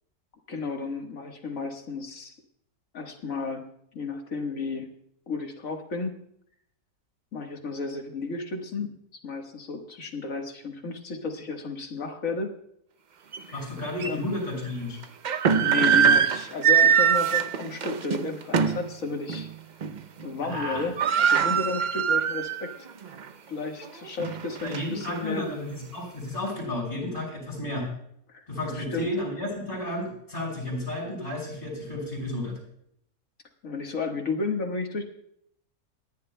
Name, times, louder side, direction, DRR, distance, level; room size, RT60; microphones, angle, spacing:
voice 1, 0.5-2.4 2.9-3.6 3.9-4.9 5.3-6.2 7.3-8.9 9.2-12.5 13.5-13.7 14.1-14.3 15.6-19.5 20.2-22.7 23.5-25.5 28.3-28.4 28.7-29.1 33.6-35.0, left 4 dB, 60° left, 3 dB, 1.9 m, -33 dB
sound 1, 13.3-13.4 14.0-14.1 15.0-18.9 19.3-19.5 19.8-20.2 20.5-20.6 20.8-22.7 23.1-23.2 23.8-25.2, right 7 dB, 65° right, 0.4 m, -22 dB
voice 2, 13.5-15.0 20.4-20.9 24.6-27.9 28.5-32.6, left 1 dB, 35° left, -1 dB, 5.9 m, -32 dB
27.5 x 11.0 x 2.2 m, 0.70 s
omnidirectional pair, 1.6 m